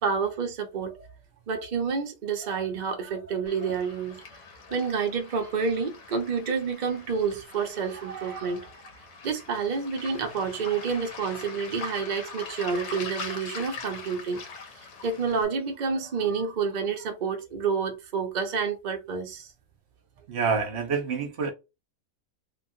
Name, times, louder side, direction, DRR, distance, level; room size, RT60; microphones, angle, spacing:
voice 1, 0.0-1.1 1.5-4.2 4.7-8.7 9.2-14.4 14.7-19.5, right 5 dB, 75° right, 0.4 m, -29 dB
Waves surf, 3.5-15.5, left 4 dB, 85° left, 1.3 m, -42 dB
voice 2, 20.3-21.5, right 5 dB, 55° right, 0.8 m, -27 dB
3.0 x 2.3 x 2.6 m
omnidirectional pair, 1.7 m